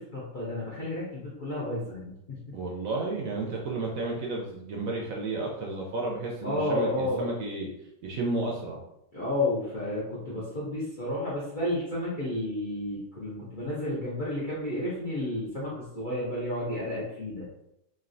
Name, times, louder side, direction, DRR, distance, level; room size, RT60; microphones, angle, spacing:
voice 1, 0.0-2.5 6.4-7.3 9.1-17.5, left 1 dB, 55° left, -7 dB, 0.5 m, -31 dB
voice 2, 2.5-7.7 8.0-8.8, right 2 dB, 70° right, -1 dB, 0.8 m, -32 dB
3.1 x 2.6 x 2.5 m, 0.81 s
omnidirectional pair, 1.8 m